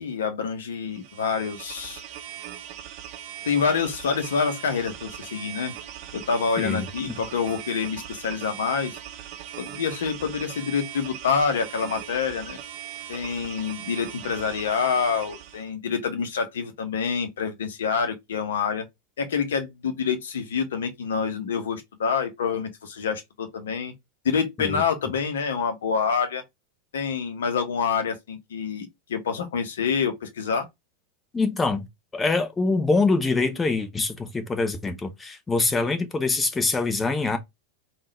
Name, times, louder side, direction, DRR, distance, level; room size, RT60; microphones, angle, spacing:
voice 1, 0.0-2.0 3.4-5.7 6.1-9.0 9.6-12.6 13.1-18.9 19.2-23.9 24.2-26.4 26.9-30.7, left 6 dB, 60° left, 0.8 m, -27 dB
sound 1, 0.9-15.7, right 11 dB, 45° right, 0.4 m, -40 dB
voice 2, 6.6-7.2 24.6-24.8 31.3-31.9 32.1-37.4, left 3 dB, 15° left, 0.7 m, -24 dB
3.7 x 2.4 x 2.9 m
figure-of-eight pair, 90°, 0 cm